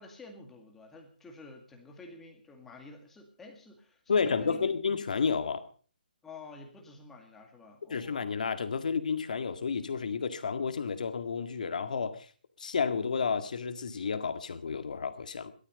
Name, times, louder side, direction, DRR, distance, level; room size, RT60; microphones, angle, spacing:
voice 1, 0.0-4.8 6.2-8.3, left 3 dB, 5° left, 2 dB, 2.1 m, -50 dB
voice 2, 4.1-5.6 7.9-12.3 12.6-15.5, left 5 dB, 60° left, 9 dB, 1.9 m, -31 dB
16.5 x 13.0 x 5.3 m, 0.41 s
hypercardioid pair, 165°, 5 cm